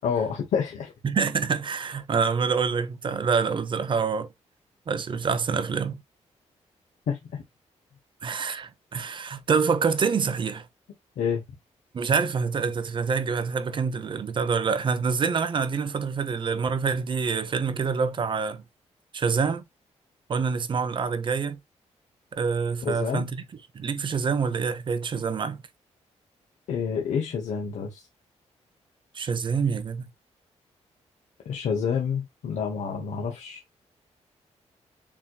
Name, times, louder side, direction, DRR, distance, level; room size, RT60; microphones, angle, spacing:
voice 1, 0.0-0.9 7.1-7.2 11.2-11.4 22.8-23.3 26.7-28.0 31.4-33.6, left 6 dB, 85° left, 1.1 m, -28 dB
voice 2, 1.0-4.3 4.9-6.0 8.2-10.7 11.9-18.6 19.1-19.6 20.3-21.6 22.3-23.4 23.7-25.6 29.1-30.1, right 5 dB, 45° right, 0.7 m, -26 dB
7.3 x 3.0 x 2.3 m
cardioid pair, 115°, 12 cm